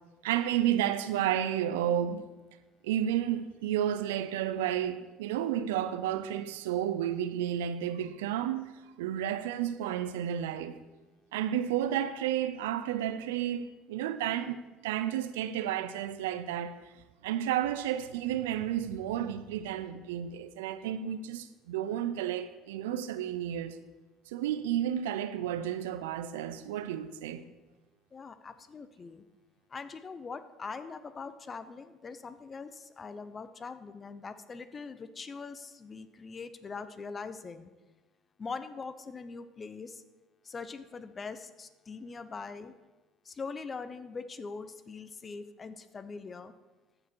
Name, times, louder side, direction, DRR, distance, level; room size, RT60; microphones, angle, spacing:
voice 1, 0.2-2.3 2.8-10.8 11.3-16.7 17.2-23.8 24.3-27.4, right 10 dB, 90° right, 0.5 m, -32 dB
voice 2, 28.1-29.2 29.7-37.7 38.4-40.0 40.4-42.7 43.2-46.5, left 4 dB, 35° left, 0.7 m, -42 dB
14.5 x 4.9 x 4.6 m
supercardioid pair, 80°, 0 cm